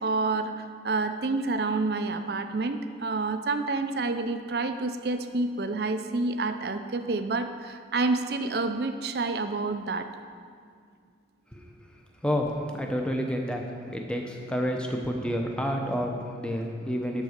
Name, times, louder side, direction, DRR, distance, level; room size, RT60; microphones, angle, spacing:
voice 1, 0.0-10.1, right 3 dB, 60° right, 8 dB, 0.5 m, -28 dB
voice 2, 12.2-13.6 13.9-17.2, equal, 5° left, 1 dB, 0.8 m, -29 dB
12.0 x 4.1 x 6.5 m, 2.1 s
head